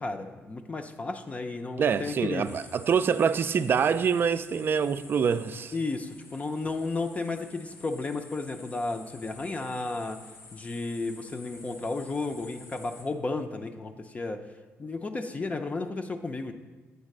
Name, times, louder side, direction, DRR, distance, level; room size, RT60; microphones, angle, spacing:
voice 1, 0.0-2.5 5.7-10.2 10.5-14.4 14.8-16.5, left 3 dB, 25° left, 0.5 m, -33 dB
voice 2, 1.8-5.7, right 6 dB, 45° right, 0.3 m, -25 dB
sound 1, 2.4-13.0, left 3 dB, 85° left, 1.5 m, -51 dB
8.2 x 3.9 x 6.5 m
cardioid pair, 100°, 5 cm